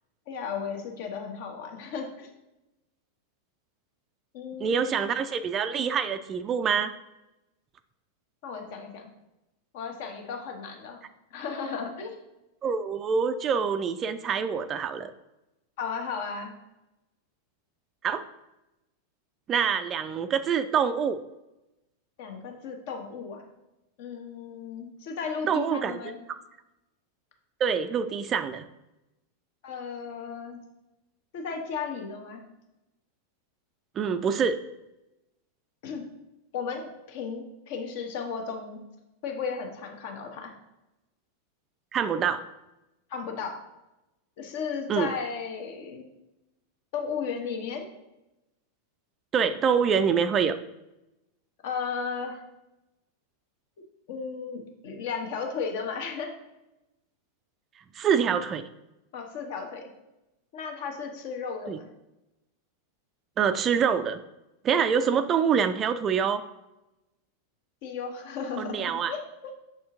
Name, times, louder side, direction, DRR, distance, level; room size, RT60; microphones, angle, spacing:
voice 1, 0.3-2.3 4.3-5.1 8.4-9.1 9.7-11.0 11.3-12.2 15.8-16.5 22.2-23.4 24.0-26.2 29.6-30.6 31.3-32.4 35.8-36.0 36.5-38.8 39.2-40.5 43.1-43.6 44.4-46.1 46.9-47.9 51.6-52.4 54.1-56.3 59.1-59.8 60.5-61.9 67.8-69.2, left 5 dB, 50° left, 3 dB, 1.0 m, -35 dB
voice 2, 4.6-6.9 12.6-15.1 18.0-18.2 19.5-21.2 25.5-26.1 27.6-28.7 34.0-34.6 41.9-42.4 44.9-45.1 49.3-50.6 57.9-58.7 61.7-61.8 63.4-64.2 64.6-66.4 68.6-69.1, right 7 dB, 25° right, 10 dB, 0.3 m, -25 dB
6.7 x 4.3 x 3.6 m, 0.96 s
figure-of-eight pair, 90°, 0 cm